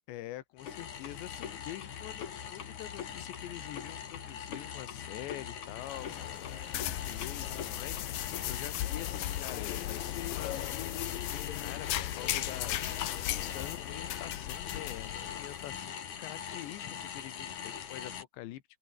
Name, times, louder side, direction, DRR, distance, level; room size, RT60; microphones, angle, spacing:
voice 1, 0.1-18.6, left 15 dB, 85° left, 3.6 m, -46 dB
sound 1, 0.6-18.2, left 8 dB, 50° left, 3.4 m, -42 dB
sound 2, 5.8-15.8, left 13 dB, 65° left, 2.6 m, -37 dB
open air
omnidirectional pair, 5.0 m